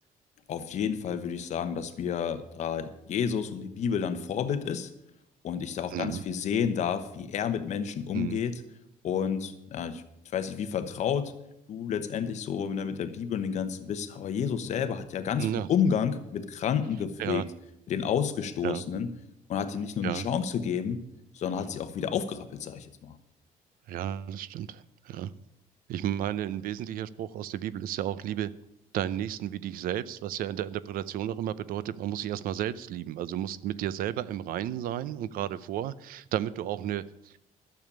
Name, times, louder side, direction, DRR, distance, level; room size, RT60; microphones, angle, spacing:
voice 1, 0.5-4.9 5.4-8.6 9.0-10.0 10.3-11.3 11.7-17.4 17.9-19.1 19.5-21.0 21.3-23.2, left 7 dB, 55° left, 9 dB, 1.1 m, -30 dB
voice 2, 5.9-6.2 8.1-8.4 15.4-15.7 17.2-17.4 18.6-18.8 20.0-20.3 23.9-25.3 25.9-28.5 28.9-37.4, right 11 dB, 80° right, 17 dB, 0.6 m, -33 dB
12.5 x 7.1 x 8.6 m, 0.82 s
cardioid pair, 165°, 15 cm